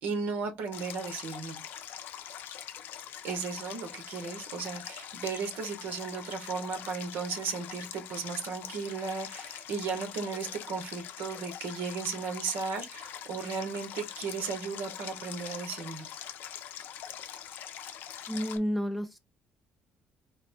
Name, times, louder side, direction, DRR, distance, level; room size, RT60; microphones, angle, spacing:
voice 1, 0.0-1.6 3.2-16.1, right 5 dB, 70° right, 1.1 m, -35 dB
Stream, 0.7-18.6, left 10 dB, 65° left, 0.6 m, -43 dB
voice 2, 18.3-19.2, equal, ahead, 0.4 m, -31 dB
4.1 x 2.1 x 4.3 m
cardioid pair, 150°, 4 cm